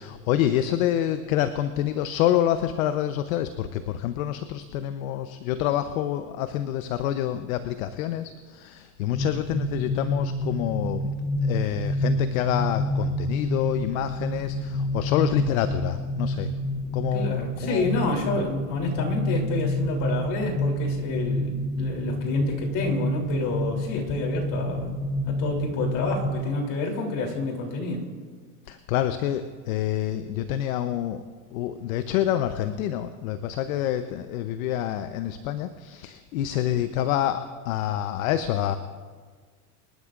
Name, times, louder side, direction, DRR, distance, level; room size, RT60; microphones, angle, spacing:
voice 1, 0.0-11.1 11.4-16.5 16.9-17.3 17.6-17.9 28.7-31.2 31.5-38.8, left 11 dB, 65° left, 10 dB, 0.8 m, -27 dB
sound 1, 9.1-26.4, left 1 dB, 10° left, 0.9 m, -28 dB
voice 2, 17.1-24.9 25.2-28.0, left 3 dB, 40° left, 1 dB, 3.3 m, -29 dB
25.5 x 12.0 x 2.5 m, 1.5 s
hypercardioid pair, 110°, 46 cm